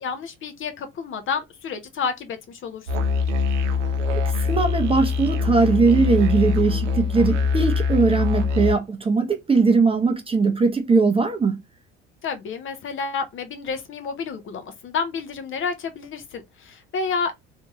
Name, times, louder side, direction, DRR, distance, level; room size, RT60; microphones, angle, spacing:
voice 1, 0.0-2.9 12.2-17.3, left 5 dB, 35° left, 0.7 m, -30 dB
Musical instrument, 2.9-8.7, left 5 dB, 70° right, 0.7 m, -23 dB
voice 2, 4.3-11.6, right 4 dB, 15° right, 0.7 m, -20 dB
3.4 x 2.7 x 2.9 m
figure-of-eight pair, 60°, 37 cm